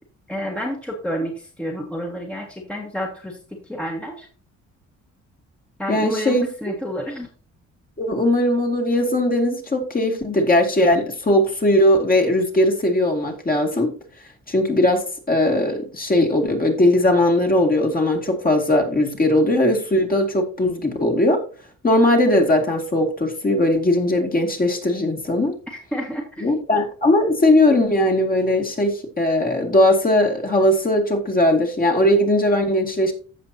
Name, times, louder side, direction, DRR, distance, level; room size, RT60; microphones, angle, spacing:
voice 1, 0.3-3.4 3.6-4.3 5.8-7.3 25.9-26.6, equal, 5° left, 0 dB, 1.6 m, -30 dB
voice 2, 5.9-6.5 8.0-13.9 14.5-21.4 21.8-25.5 26.4-33.1, left 1 dB, 30° left, 2 dB, 2.3 m, -19 dB
15.0 x 5.5 x 2.8 m, 0.40 s
cardioid pair, 90°, 30 cm